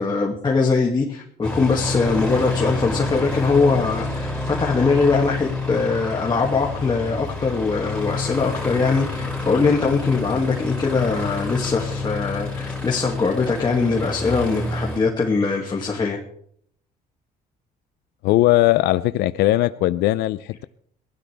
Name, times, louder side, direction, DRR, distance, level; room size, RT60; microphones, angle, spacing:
voice 1, 0.0-16.2, left 4 dB, 25° left, -2 dB, 2.3 m, -21 dB
Aircraft, 1.4-15.0, left 2 dB, 5° left, 6.6 m, -28 dB
voice 2, 18.2-20.6, left 16 dB, 80° left, 15 dB, 0.5 m, -19 dB
22.5 x 16.0 x 3.5 m, 0.66 s
cardioid pair, 110°, 17 cm